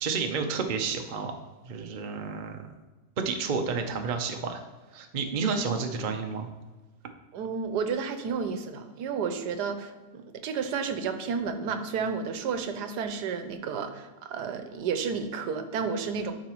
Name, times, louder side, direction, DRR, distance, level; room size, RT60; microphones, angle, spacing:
voice 1, 0.0-1.3 1.6-2.7 3.2-4.6 4.9-6.5, right 5 dB, 55° right, 5 dB, 0.5 m, -30 dB
voice 2, 7.3-16.3, right 6 dB, 75° right, 8 dB, 1.2 m, -31 dB
12.0 x 5.0 x 3.0 m, 1.2 s
omnidirectional pair, 1.8 m